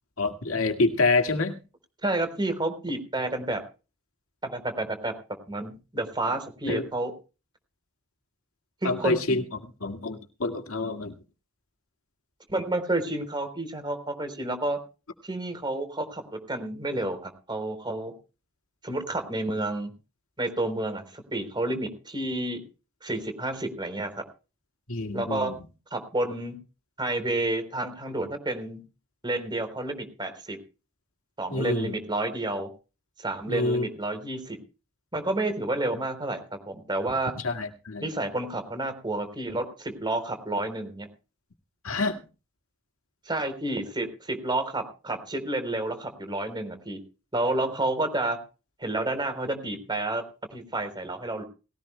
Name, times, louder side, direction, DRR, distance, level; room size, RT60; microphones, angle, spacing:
voice 1, 0.2-1.6 6.7-6.9 8.8-11.1 24.9-25.6 31.5-31.9 33.5-33.9 37.4-38.1 41.8-42.2, left 3 dB, 70° left, 5 dB, 2.0 m, -27 dB
voice 2, 2.0-3.6 4.4-5.1 5.5-7.1 8.8-9.5 12.5-14.8 15.2-16.2 16.5-18.1 18.8-19.9 20.4-22.6 23.0-24.1 25.1-25.5 25.9-26.6 27.0-28.8 29.2-30.6 31.4-32.7 33.2-34.6 35.1-36.4 36.7-37.3 38.0-41.1 43.3-47.0 47.3-48.4 48.8-50.2 50.5-51.4, right 2 dB, 20° right, 8 dB, 3.7 m, -30 dB
20.0 x 17.5 x 2.2 m, 0.33 s
head